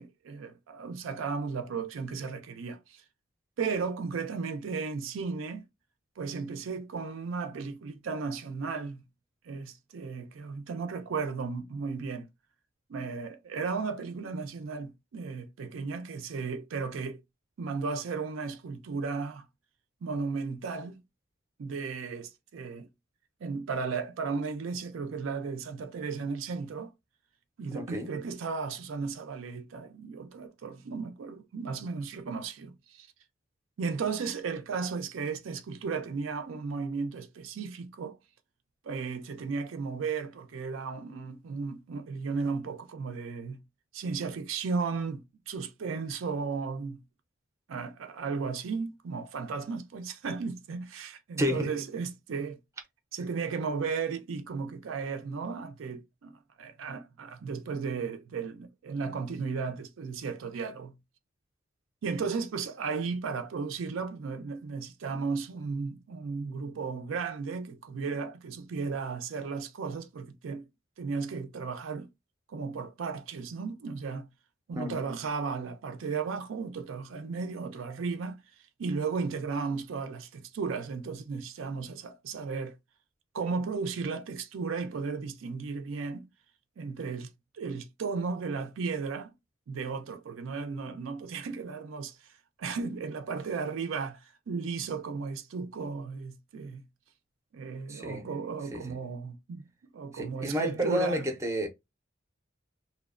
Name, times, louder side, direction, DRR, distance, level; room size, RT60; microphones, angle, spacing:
voice 1, 0.0-3.0 3.6-5.6 6.2-9.0 9.4-12.3 12.9-17.2 17.6-19.4 20.0-21.0 21.6-22.9 23.4-26.9 27.6-33.1 33.8-38.2 38.8-43.6 43.9-47.0 47.7-52.6 53.1-56.3 56.6-60.9 62.0-70.7 71.0-72.1 72.5-74.3 74.7-78.4 78.8-82.8 83.3-86.2 86.8-87.3 87.5-89.3 89.7-92.3 92.6-96.8 97.5-99.6 99.9-101.3, right 5 dB, 70° right, 0.4 m, -35 dB
voice 2, 27.7-28.1 51.4-51.7 74.7-75.0 97.9-98.3 98.7-98.9 100.1-101.7, equal, 15° right, 0.5 m, -30 dB
2.7 x 2.0 x 2.3 m
head